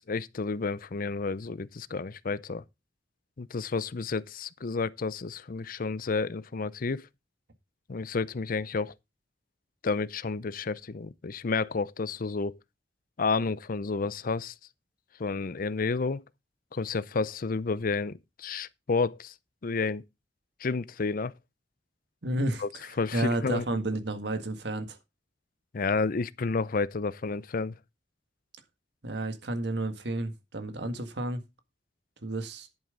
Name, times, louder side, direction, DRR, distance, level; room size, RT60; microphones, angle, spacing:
voice 1, 0.0-2.6 3.4-7.1 7.9-8.9 9.8-12.6 13.2-14.5 15.2-16.2 16.7-19.3 19.6-20.0 20.6-21.3 22.6-22.7 23.0-23.6 25.7-27.8, left 4 dB, 50° left, 0.6 m, -30 dB
voice 2, 22.2-25.0 29.0-31.4 32.2-32.7, right 1 dB, 70° right, 1.8 m, -31 dB
10.5 x 8.7 x 3.8 m
head